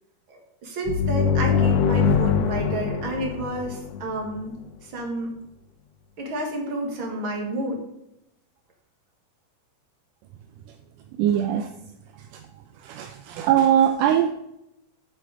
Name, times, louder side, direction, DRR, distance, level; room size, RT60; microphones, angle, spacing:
voice 1, 0.3-5.3 6.2-7.8, right 1 dB, 45° right, 1 dB, 2.1 m, -30 dB
sound 1, 0.9-4.4, left 6 dB, 75° left, 1.5 m, -23 dB
voice 2, 11.2-11.7 12.2-12.4 12.8-14.3, right 10 dB, 85° right, 7 dB, 2.1 m, -21 dB
7.5 x 7.0 x 4.7 m, 0.84 s
omnidirectional pair, 3.7 m